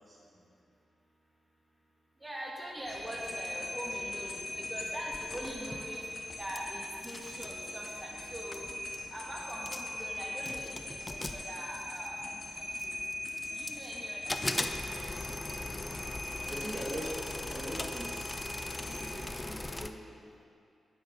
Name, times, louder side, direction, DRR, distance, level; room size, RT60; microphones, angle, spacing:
voice 1, 0.1-0.5 16.4-20.3, right 1 dB, 35° right, -4 dB, 1.9 m, -43 dB
voice 2, 2.2-6.0 6.4-8.7 9.1-12.9 13.5-14.4, right 1 dB, 20° right, -3 dB, 2.1 m, -43 dB
sound 1, 2.9-19.2, left 2 dB, 45° left, 1.6 m, -41 dB
sound 2, 5.1-6.6 6.8-7.6 8.2-8.3 8.5-9.1 9.5-10.0 10.4-12.2 12.8-13.9 14.3-19.9, left 2 dB, 25° left, 0.6 m, -39 dB
9.9 x 7.7 x 5.2 m, 2.5 s
supercardioid pair, 45°, 0 cm